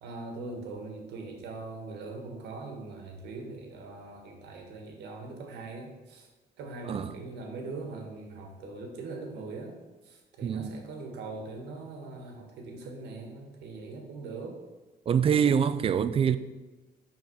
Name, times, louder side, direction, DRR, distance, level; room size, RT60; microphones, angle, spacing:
voice 1, 0.0-6.3 6.6-9.8 10.0-14.6, right 3 dB, 80° right, 1.7 m, -41 dB
voice 2, 10.4-10.7 15.1-16.4, right 7 dB, 35° right, 0.5 m, -25 dB
6.2 x 5.2 x 5.6 m
cardioid pair, 110°, 17 cm